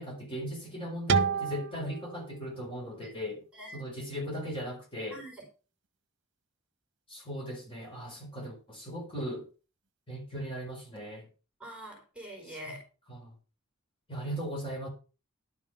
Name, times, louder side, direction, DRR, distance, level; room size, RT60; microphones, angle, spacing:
voice 1, 0.0-3.4 3.7-5.2 7.1-9.5 10.1-11.3 12.5-12.7 13.1-13.3 14.1-14.9, equal, 25° left, 0 dB, 4.3 m, -38 dB
sound 1, 1.1-3.9, right 5 dB, 55° right, 1.0 m, -32 dB
voice 2, 3.5-4.0 5.1-5.5 11.6-12.8, right 1 dB, 5° right, 0 dB, 4.4 m, -45 dB
11.5 x 6.4 x 5.8 m, 0.34 s
head